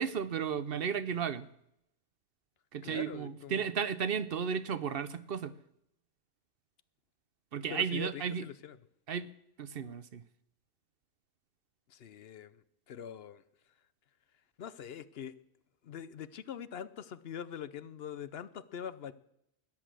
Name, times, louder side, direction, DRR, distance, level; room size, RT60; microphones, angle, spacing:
voice 1, 0.0-1.5 2.7-5.5 7.5-8.4 9.1-9.3 9.6-10.2, right 7 dB, 60° right, 14 dB, 0.8 m, -34 dB
voice 2, 2.8-3.7 7.7-8.8 11.9-13.4 14.6-15.3 15.8-19.1, left 8 dB, 65° left, 15 dB, 0.9 m, -43 dB
13.0 x 10.5 x 7.5 m, 0.78 s
omnidirectional pair, 1.2 m